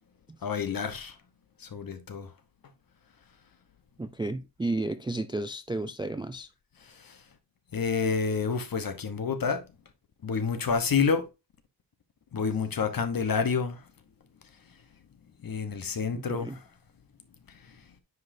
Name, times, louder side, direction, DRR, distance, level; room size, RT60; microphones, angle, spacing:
voice 1, 0.4-1.1 1.6-2.3 7.0-7.1 7.7-9.6 10.2-11.2 12.3-13.8 15.4-16.5, left 5 dB, 50° left, 1.1 m, -28 dB
voice 2, 4.0-6.5 16.1-16.6, right 2 dB, 10° right, 0.3 m, -32 dB
9.4 x 5.2 x 2.6 m
wide cardioid pair, 120°, 44 cm